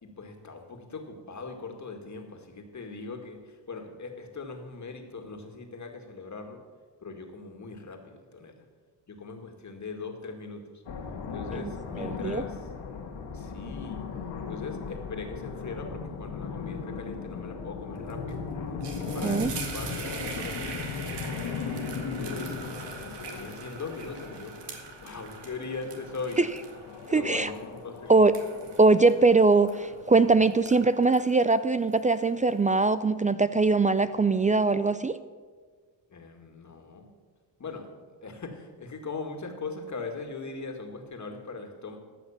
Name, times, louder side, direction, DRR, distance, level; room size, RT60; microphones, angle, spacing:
voice 1, 0.0-6.6 7.0-8.6 9.1-10.8 11.3-12.7 13.3-14.0 14.5-18.4 19.0-21.0 22.1-26.4 27.0-28.2 36.1-37.1 37.6-37.9 38.2-42.0, left 4 dB, 40° left, 4 dB, 2.0 m, -40 dB
sound 1, 10.9-30.5, left 5 dB, 75° left, 1.8 m, -38 dB
voice 2, 12.0-12.4 19.2-19.5 27.1-27.5 28.1-28.3 28.8-35.2, right 3 dB, 20° right, 14 dB, 0.3 m, -22 dB
sound 2, 18.1-18.3 18.6-30.2 30.5-32.4, right 5 dB, 70° right, 1.9 m, -43 dB
14.0 x 6.0 x 7.2 m, 1.5 s
cardioid pair, 75°, 43 cm